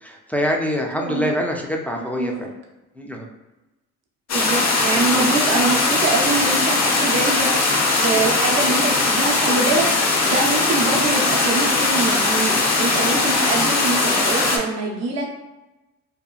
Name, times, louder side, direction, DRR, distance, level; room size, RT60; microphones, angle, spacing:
voice 1, 0.0-2.5 3.0-3.3 5.1-5.2, equal, 5° left, 0 dB, 0.3 m, -25 dB
voice 2, 1.0-1.3 2.2-2.4 4.3-7.5 7.9-15.3, right 3 dB, 60° right, -1 dB, 0.7 m, -24 dB
sound 1, 4.3-14.6, left 3 dB, 60° left, 0.7 m, -19 dB
2.8 x 2.3 x 2.3 m, 1.0 s
cardioid pair, 90°, 30 cm